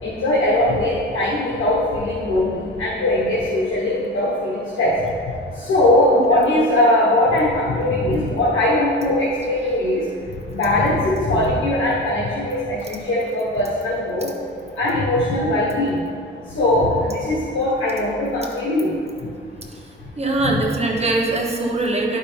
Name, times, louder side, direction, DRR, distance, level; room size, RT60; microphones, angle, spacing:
voice 1, 0.0-4.9 5.6-10.0 10.5-14.3 14.8-16.0 16.5-18.9, left 1 dB, 85° left, -8 dB, 1.3 m, -20 dB
voice 2, 6.1-6.5 19.7-19.8 20.2-22.2, right 2 dB, 30° right, -1 dB, 1.2 m, -22 dB
11.0 x 5.4 x 3.4 m, 2.4 s
wide cardioid pair, 100°, 20 cm